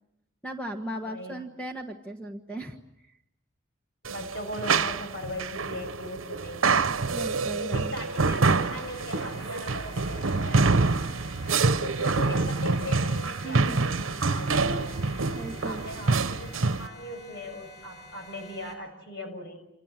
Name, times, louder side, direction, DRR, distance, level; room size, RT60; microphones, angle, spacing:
voice 1, 0.4-2.8 7.1-7.9 13.4-13.9 15.3-15.8, right 1 dB, 5° left, 2 dB, 1.5 m, -36 dB
voice 2, 1.0-1.4 4.0-7.0 7.6-10.7 11.1-11.2 11.8-15.0 15.5-16.5 16.8-19.6, left 1 dB, 60° left, 6 dB, 6.7 m, -39 dB
sound 1, 4.0-16.9, right 4 dB, 85° right, 1.0 m, -26 dB
sound 2, 8.4-18.7, left 2 dB, 30° left, 6.6 m, -49 dB
28.5 x 27.5 x 7.6 m, 0.83 s
head